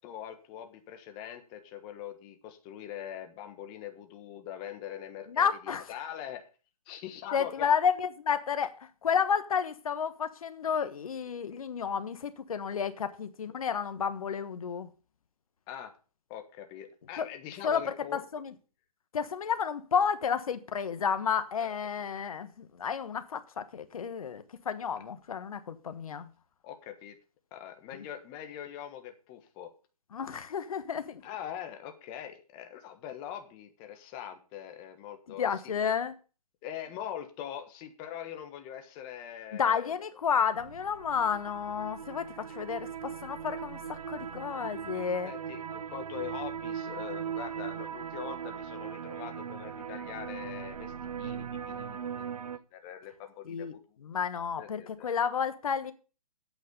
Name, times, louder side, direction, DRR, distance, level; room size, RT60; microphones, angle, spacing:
voice 1, 0.0-6.4 6.9-7.7 15.7-15.9 16.3-18.2 21.6-21.7 26.6-27.2 27.5-29.7 31.2-35.9 36.6-39.9 42.5-42.6 45.2-50.9 51.2-52.0 52.7-53.7 54.6-55.1, left 10 dB, 25° left, 1.4 m, -42 dB
voice 2, 5.3-5.9 7.3-8.7 9.0-14.9 17.2-17.3 17.6-18.5 19.1-26.3 30.1-31.2 35.4-36.1 39.5-45.3 53.4-53.7 54.0-55.9, left 7 dB, 65° left, 1.4 m, -31 dB
sound 1, 40.6-52.6, right 8 dB, 70° right, 0.9 m, -39 dB
8.7 x 6.0 x 8.1 m
hypercardioid pair, 145°, 20 cm